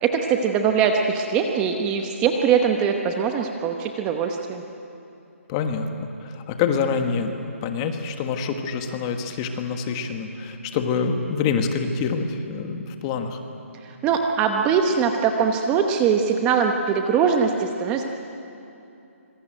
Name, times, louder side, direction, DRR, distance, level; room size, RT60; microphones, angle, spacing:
voice 1, 0.0-4.6 14.0-18.0, right 6 dB, 15° right, 4 dB, 1.0 m, -22 dB
voice 2, 5.5-5.9 6.2-7.3 7.6-13.4, left 5 dB, 20° left, 6 dB, 1.5 m, -26 dB
25.5 x 22.5 x 9.1 m, 2.8 s
hypercardioid pair, 165°, 8 cm